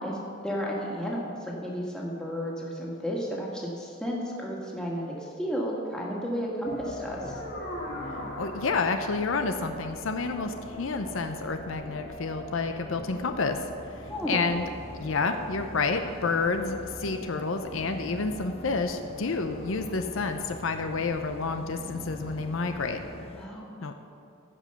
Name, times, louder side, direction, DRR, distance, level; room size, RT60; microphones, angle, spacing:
voice 1, 0.0-7.4 14.1-14.5 23.4-23.9, equal, 5° left, -4 dB, 1.8 m, -33 dB
sound 1, 6.6-23.1, left 1 dB, 50° left, 2.3 m, -42 dB
voice 2, 8.4-13.6 14.3-14.6 14.9-23.0 23.8-23.9, left 4 dB, 70° left, 7 dB, 0.6 m, -29 dB
sound 2, 14.0-23.5, left 2 dB, 30° left, 0.5 m, -44 dB
15.0 x 5.1 x 6.8 m, 2.4 s
head